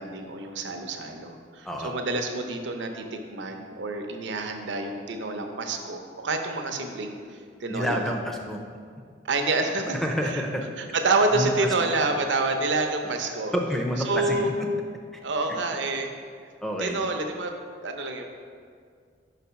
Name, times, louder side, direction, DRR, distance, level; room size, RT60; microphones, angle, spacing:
voice 1, 0.0-8.1 9.2-10.0 10.2-10.4 10.8-13.5 14.1-14.5 15.2-16.1 16.8-18.2, right 3 dB, 70° right, 4 dB, 0.6 m, -28 dB
voice 2, 7.7-8.6 10.0-10.6 11.3-11.5 11.8-11.9 13.5-14.5 15.1-15.2 15.5-15.6 16.6-17.0, equal, ahead, 2 dB, 0.5 m, -28 dB
5.3 x 4.1 x 5.7 m, 2.1 s
head